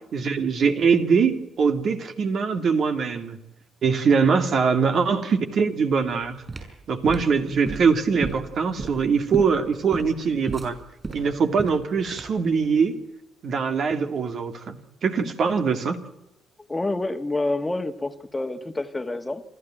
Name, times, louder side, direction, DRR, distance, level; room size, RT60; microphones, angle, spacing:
voice 1, 0.1-3.4 3.8-6.4 6.9-10.8 11.1-13.0 13.4-14.8 15.0-16.0, right 5 dB, 60° right, 7 dB, 2.7 m, -22 dB
sound 1, 6.2-12.5, right 3 dB, 30° right, 7.8 m, -34 dB
voice 2, 16.7-19.4, left 2 dB, 15° left, 8 dB, 1.7 m, -28 dB
28.0 x 13.0 x 9.1 m, 0.90 s
cardioid pair, 90°, 0 cm